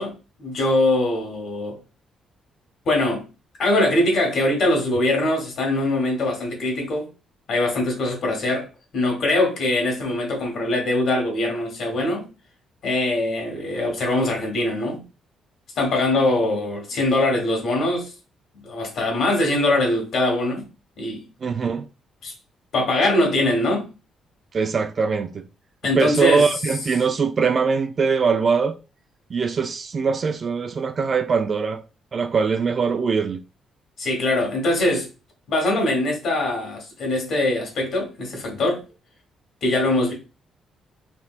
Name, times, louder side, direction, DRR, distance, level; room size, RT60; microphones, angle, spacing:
voice 1, 0.0-1.8 2.8-3.3 3.6-7.1 7.5-8.7 8.9-12.3 12.8-15.0 15.8-18.1 18.6-20.7 21.0-21.3 22.2-22.3 22.7-23.9 25.8-26.4 34.0-35.1 35.5-38.8 39.6-40.1, left 1 dB, 65° left, 1.5 m, -22 dB
voice 2, 21.4-21.9 24.5-25.4 26.0-28.8 29.3-31.8 32.1-33.4, right 5 dB, 45° right, 0.3 m, -22 dB
3.4 x 2.8 x 2.4 m
cardioid pair, 90°, 0 cm